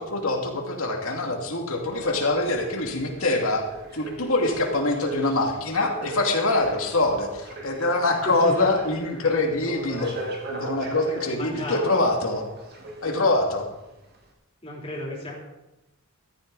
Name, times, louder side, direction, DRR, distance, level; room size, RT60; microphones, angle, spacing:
voice 1, 0.0-3.6 3.9-12.4 13.0-13.6, left 2 dB, 70° left, 1 dB, 2.6 m, -24 dB
sound 1, 1.9-13.5 14.1-14.2, right 2 dB, 45° right, 2.2 m, -38 dB
voice 2, 8.2-8.7 11.3-11.9 14.6-15.4, left 1 dB, 25° left, -3 dB, 3.6 m, -33 dB
14.5 x 13.0 x 4.1 m, 0.99 s
head